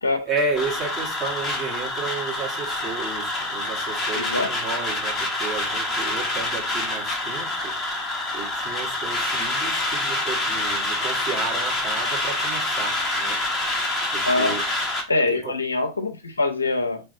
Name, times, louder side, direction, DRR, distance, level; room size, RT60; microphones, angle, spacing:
voice 1, 0.3-13.4 14.1-14.6 15.4-15.5, right 4 dB, 25° right, 1.6 m, -32 dB
sound 1, 0.5-15.0, left 2 dB, 20° left, 1.0 m, -26 dB
voice 2, 4.1-4.5 14.3-14.6 15.1-17.0, left 2 dB, 75° left, 0.7 m, -24 dB
4.1 x 3.3 x 2.7 m
figure-of-eight pair, 90°, 0 cm